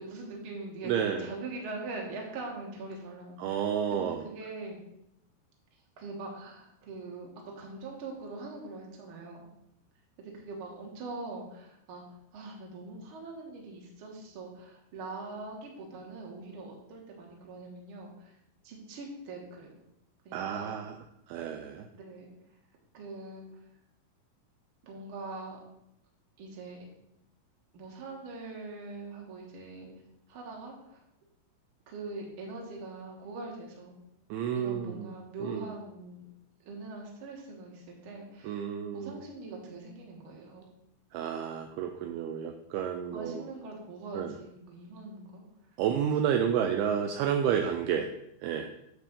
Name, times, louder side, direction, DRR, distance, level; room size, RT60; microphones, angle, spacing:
voice 1, 0.0-3.6 3.9-4.8 6.0-9.5 10.2-18.4 18.6-19.8 20.2-20.8 21.9-22.3 22.9-23.5 24.8-25.6 26.4-26.8 27.7-29.9 30.3-31.0 31.9-34.0 34.5-36.2 36.6-38.6 38.9-40.6 43.1-45.4, right 3 dB, 65° right, -1 dB, 1.3 m, -42 dB
voice 2, 0.8-1.2 3.4-4.2 20.3-20.9 21.3-21.9 34.3-35.1 35.4-35.7 38.4-39.2 41.1-43.4 44.1-44.3 45.8-48.1 48.4-48.7, right 8 dB, 85° right, 5 dB, 2.2 m, -30 dB
9.6 x 3.4 x 6.7 m, 0.80 s
omnidirectional pair, 5.1 m